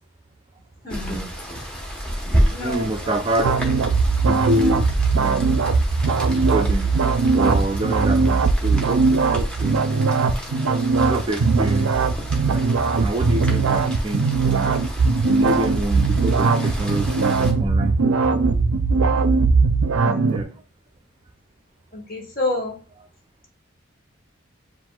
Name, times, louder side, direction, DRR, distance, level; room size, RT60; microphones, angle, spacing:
voice 1, 0.8-1.3 2.5-3.1 4.2-4.7 20.0-20.3 21.9-22.8, left 2 dB, 45° left, 1 dB, 1.1 m, -29 dB
Rain, 0.9-17.5, equal, 5° left, 0.8 m, -31 dB
voice 2, 2.6-3.5 4.3-5.5 6.1-6.9 7.3-9.9 11.1-12.0 12.5-12.7 13.0-14.8 15.3-18.4 20.3-20.5, right 1 dB, 25° right, 5 dB, 0.3 m, -27 dB
sound 1, 3.4-20.4, right 4 dB, 90° right, 0.4 m, -19 dB
7.4 x 2.5 x 2.3 m, 0.37 s
head